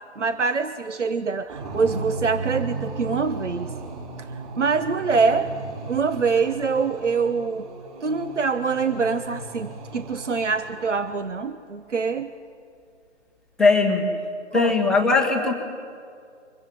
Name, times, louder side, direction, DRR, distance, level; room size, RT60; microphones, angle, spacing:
voice 1, 0.2-3.7 4.2-4.3 4.6-5.5 5.9-7.7 8.0-12.3 14.5-14.7, right 4 dB, 75° right, 11 dB, 1.2 m, -24 dB
sound 1, 1.5-11.4, right 3 dB, 30° right, 5.1 m, -36 dB
voice 2, 13.6-14.1 14.5-15.5, left 3 dB, ahead, 0 dB, 1.0 m, -19 dB
24.5 x 22.5 x 9.1 m, 2.3 s
figure-of-eight pair, 145°, 36 cm